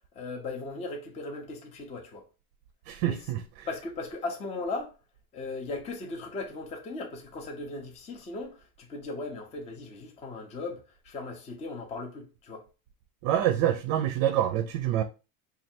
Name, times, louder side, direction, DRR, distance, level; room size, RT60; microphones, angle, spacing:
voice 1, 0.1-2.3 3.0-3.2 3.7-4.9 5.3-12.7, left 3 dB, 15° left, 0.5 m, -37 dB
voice 2, 2.9-3.4 13.2-15.0, right 11 dB, 50° right, 0.5 m, -26 dB
3.2 x 2.4 x 4.3 m
supercardioid pair, 150°, 45 cm